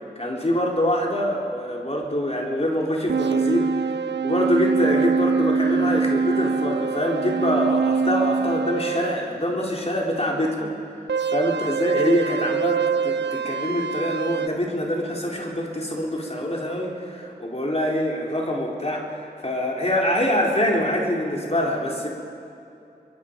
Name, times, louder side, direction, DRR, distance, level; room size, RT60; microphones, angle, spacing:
voice 1, 0.2-11.0 11.3-22.1, equal, 35° left, -2 dB, 3.6 m, -25 dB
sound 1, 3.1-9.2 11.1-14.5, right 5 dB, 85° right, 0.5 m, -24 dB
22.5 x 22.5 x 5.2 m, 2.7 s
wide cardioid pair, 45°, 17 cm